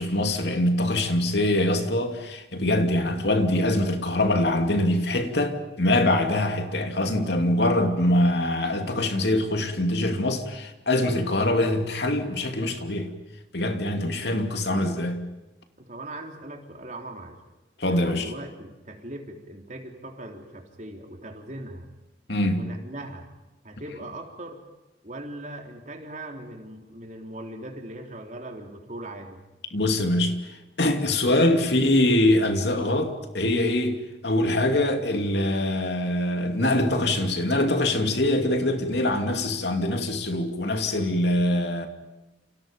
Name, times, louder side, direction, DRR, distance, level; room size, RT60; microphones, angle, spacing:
voice 1, 0.0-13.1 13.5-15.2 17.8-18.3 22.3-22.7 29.7-41.9, left 1 dB, 65° left, 2.7 m, -24 dB
voice 2, 15.8-17.4 17.9-21.9 22.6-23.3 23.6-24.6 25.0-29.4, right 1 dB, 40° right, 3.7 m, -39 dB
29.0 x 29.0 x 5.3 m
head